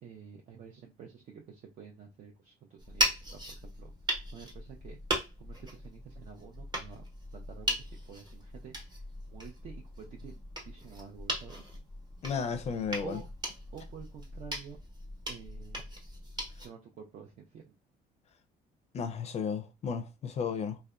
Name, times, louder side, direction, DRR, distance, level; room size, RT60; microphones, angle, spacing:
voice 1, 0.0-3.9 4.3-5.0 5.4-7.1 7.3-8.7 9.3-11.7 13.0-13.3 13.7-14.8 15.3-15.8 16.6-17.7, right 7 dB, 50° right, 0.5 m, -49 dB
sound 1, 2.8-16.7, equal, 25° right, 0.9 m, -38 dB
voice 2, 12.2-13.2 18.9-20.8, left 6 dB, 40° left, 0.4 m, -34 dB
2.6 x 2.1 x 2.2 m
cardioid pair, 110°, 17 cm